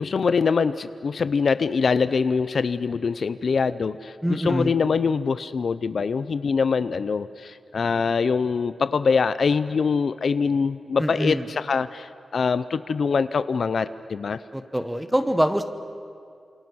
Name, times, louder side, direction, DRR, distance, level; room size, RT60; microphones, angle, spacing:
voice 1, 0.0-14.4, left 5 dB, 60° left, 13 dB, 0.6 m, -24 dB
voice 2, 4.2-4.7 11.0-11.5 14.5-15.6, equal, 5° right, 9 dB, 1.2 m, -24 dB
28.0 x 27.5 x 6.3 m, 2.3 s
wide cardioid pair, 150°, 0 cm